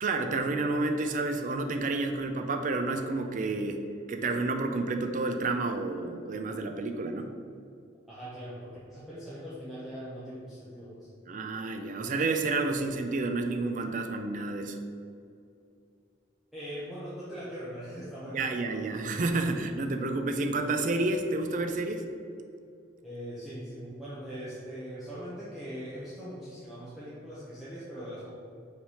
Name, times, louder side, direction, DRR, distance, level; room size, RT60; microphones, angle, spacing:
voice 1, 0.0-3.8 4.1-7.3 11.3-14.8 18.3-22.0, right 3 dB, 45° right, 5 dB, 0.4 m, -30 dB
voice 2, 8.1-11.1 16.5-18.5 23.0-28.3, equal, ahead, -11 dB, 1.0 m, -41 dB
5.8 x 3.3 x 5.5 m, 2.4 s
head